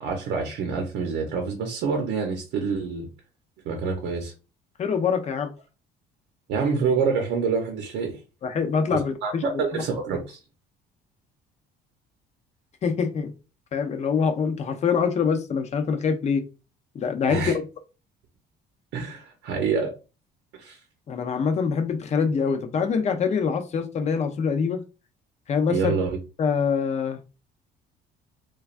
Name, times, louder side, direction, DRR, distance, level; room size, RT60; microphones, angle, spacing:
voice 1, 0.0-3.1 3.7-4.3 6.5-8.2 8.9-10.4 17.3-17.5 18.9-19.9 20.6-20.8 25.7-26.2, right 5 dB, 80° right, 2 dB, 0.7 m, -27 dB
voice 2, 4.8-5.5 8.4-9.8 12.8-13.3 13.7-16.4 16.9-17.6 21.1-24.8 25.5-25.9 26.4-27.2, left 6 dB, 40° left, 6 dB, 0.6 m, -24 dB
3.2 x 2.3 x 2.4 m, 0.31 s
cardioid pair, 110°, 18 cm